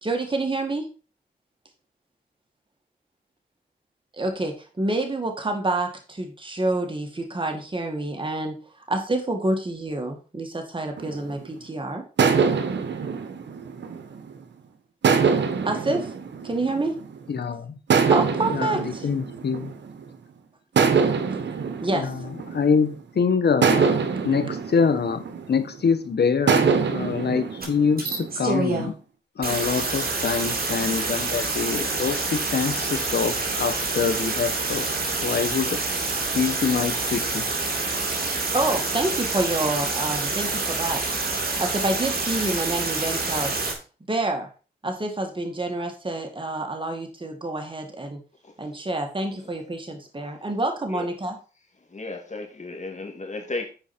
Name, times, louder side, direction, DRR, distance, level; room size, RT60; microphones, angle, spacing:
voice 1, 0.0-0.9 4.2-8.6 8.9-12.1 15.6-16.1 16.4-17.0 18.1-19.1 21.8-22.1 38.5-43.5 44.1-44.5 44.8-48.2 48.6-51.4, right 2 dB, 25° right, 2.0 m, -27 dB
sound 1, 11.0-11.6 12.2-14.4 15.0-17.2 17.9-20.2 20.8-23.0 23.6-25.9 26.5-28.7, right 5 dB, 75° right, 1.1 m, -24 dB
voice 2, 17.3-17.8 18.5-19.7 21.9-24.0 24.2-26.7 26.9-28.9 29.4-34.9 35.2-35.8 36.3-37.5, left 5 dB, 60° left, 1.1 m, -25 dB
sound 2, 27.6-27.7 28.0-28.9 29.4-43.7, right 3 dB, 55° right, 2.6 m, -27 dB
voice 3, 51.9-53.7, left 3 dB, 40° left, 2.4 m, -34 dB
9.1 x 4.9 x 4.4 m
cardioid pair, 60°, 19 cm